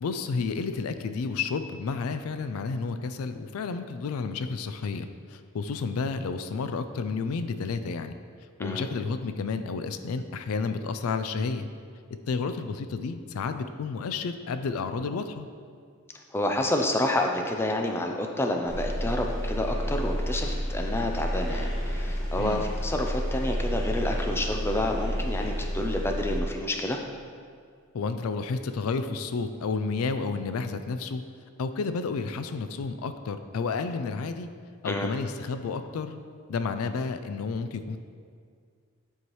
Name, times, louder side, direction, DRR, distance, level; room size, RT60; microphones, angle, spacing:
voice 1, 0.0-8.1 8.6-11.7 12.3-15.5 22.4-22.6 27.9-31.2 31.6-34.5 34.8-36.2 36.5-38.0, left 4 dB, 85° left, 10 dB, 0.4 m, -31 dB
voice 2, 16.3-27.0 34.8-35.1, left 1 dB, 10° left, 2 dB, 0.4 m, -29 dB
sound 1, 18.7-26.4, equal, 55° left, 1.3 m, -30 dB
9.8 x 4.7 x 3.1 m, 2.1 s
head